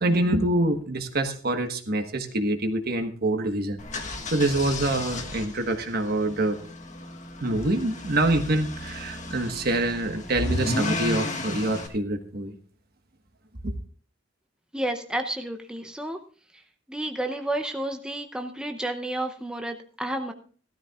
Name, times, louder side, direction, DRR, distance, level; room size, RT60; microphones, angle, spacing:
voice 1, 0.0-6.6 7.4-12.5 13.6-13.7, right 1 dB, 55° right, 6 dB, 1.4 m, -26 dB
sound 1, 3.8-11.9, left 2 dB, 40° left, 1.6 m, -33 dB
voice 2, 14.7-16.2 16.9-20.3, right 1 dB, 5° right, 4 dB, 0.7 m, -31 dB
16.0 x 13.0 x 2.4 m, 0.40 s
head